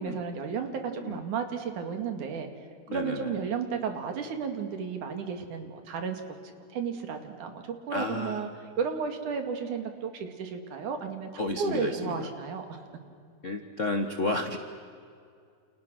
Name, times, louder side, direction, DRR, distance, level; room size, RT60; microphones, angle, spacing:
voice 1, 0.0-2.5 2.9-8.5 8.8-11.3 11.6-12.8, right 6 dB, 75° right, 6 dB, 3.6 m, -33 dB
voice 2, 2.9-3.3 7.9-8.4 11.4-12.3 13.4-14.6, left 2 dB, 70° left, 6 dB, 0.7 m, -32 dB
29.5 x 29.0 x 6.3 m, 2.3 s
omnidirectional pair, 3.6 m